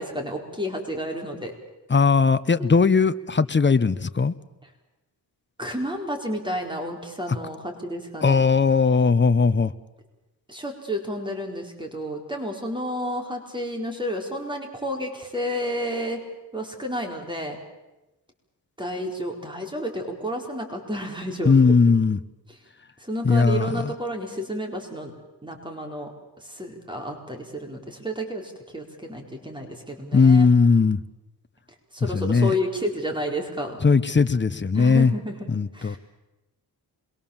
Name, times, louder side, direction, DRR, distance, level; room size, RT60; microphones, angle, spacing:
voice 1, 0.0-1.5 2.6-2.8 5.6-8.5 10.5-16.2 16.5-17.6 18.8-21.6 23.0-25.1 25.4-26.1 26.5-30.5 31.9-33.8 34.7-35.5 35.7-36.0, equal, 10° right, 2 dB, 4.4 m, -31 dB
voice 2, 1.9-4.3 8.2-9.7 21.4-22.2 23.2-23.9 30.1-31.0 32.1-32.5 33.8-35.1 35.5-36.0, left 4 dB, 30° left, 14 dB, 1.0 m, -18 dB
26.5 x 22.5 x 7.3 m, 1.0 s
cardioid pair, 85°, 40 cm